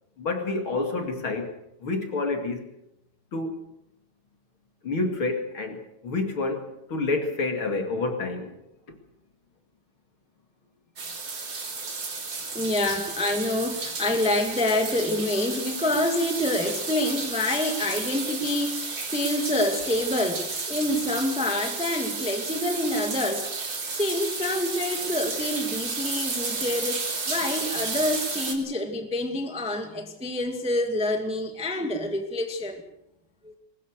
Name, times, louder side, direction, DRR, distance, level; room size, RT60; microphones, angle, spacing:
voice 1, 0.2-2.7 3.3-3.5 4.8-8.5, left 3 dB, 40° left, 4 dB, 3.0 m, -28 dB
sound 1, 11.0-28.5, right 4 dB, 35° right, 3.3 m, -32 dB
voice 2, 12.5-23.5 23.9-32.8 33.4-33.5, left 1 dB, ahead, 4 dB, 1.7 m, -27 dB
23.0 x 20.5 x 6.6 m, 0.82 s
omnidirectional pair, 3.6 m